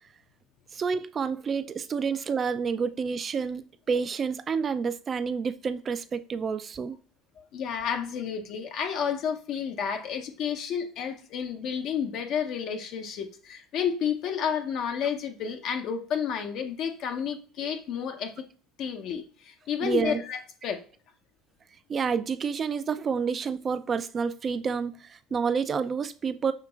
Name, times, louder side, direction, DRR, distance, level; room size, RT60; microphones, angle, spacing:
voice 1, 0.7-7.0 19.8-20.2 21.9-26.5, right 6 dB, 35° right, 0.3 m, -29 dB
voice 2, 7.5-18.3 18.8-20.8, left 7 dB, 60° left, 0.6 m, -31 dB
5.7 x 2.9 x 2.3 m
supercardioid pair, 95°, 0 cm